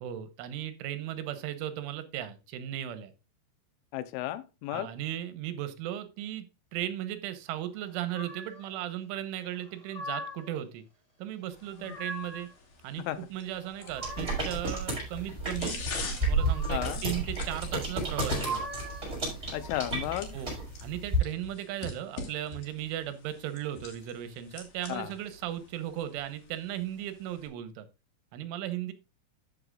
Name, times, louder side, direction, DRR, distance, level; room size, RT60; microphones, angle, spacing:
voice 1, 0.0-3.1 4.7-6.5 6.7-10.8 11.2-12.5 12.8-15.8 16.2-18.7 20.3-27.9 28.3-28.9, right 12 dB, 80° right, 11 dB, 3.4 m, -36 dB
voice 2, 3.9-4.9 11.9-12.0 13.1-13.2 16.7-17.0 19.5-20.3 24.9-25.1, left 14 dB, 80° left, 12 dB, 3.3 m, -33 dB
sound 1, 8.1-8.7 9.5-10.5 11.5-12.5 13.4-14.6 16.1-17.0 18.1-19.1, right 1 dB, 15° left, 1.1 m, -41 dB
sound 2, 11.5-27.5, left 4 dB, 50° left, 3.3 m, -45 dB
sound 3, 14.0-21.2, right 1 dB, 15° right, 5.4 m, -32 dB
14.5 x 6.6 x 2.4 m, 0.27 s
omnidirectional pair, 5.6 m